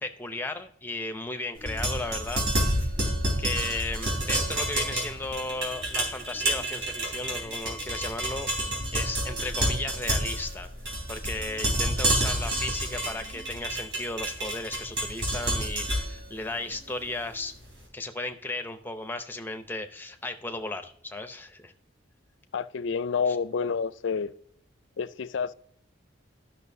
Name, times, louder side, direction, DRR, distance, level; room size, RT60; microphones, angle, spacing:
voice 1, 0.0-2.9 3.4-8.5 8.9-10.7 11.1-17.5 17.9-21.7, left 2 dB, 10° left, 0.6 m, -35 dB
sound 1, 1.6-17.6, right 1 dB, 70° right, 3.7 m, -29 dB
voice 2, 22.5-24.3 25.0-25.5, left 5 dB, 70° left, 0.4 m, -29 dB
12.5 x 6.1 x 2.7 m
head